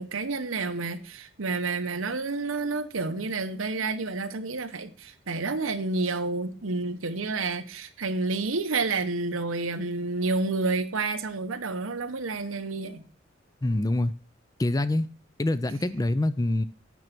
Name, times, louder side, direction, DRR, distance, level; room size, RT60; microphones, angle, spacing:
voice 1, 0.0-13.0, right 3 dB, 90° right, 1.0 m, -29 dB
voice 2, 13.6-14.1 14.6-15.1 15.4-16.6, left 1 dB, 20° left, 0.4 m, -25 dB
9.3 x 6.3 x 6.0 m
head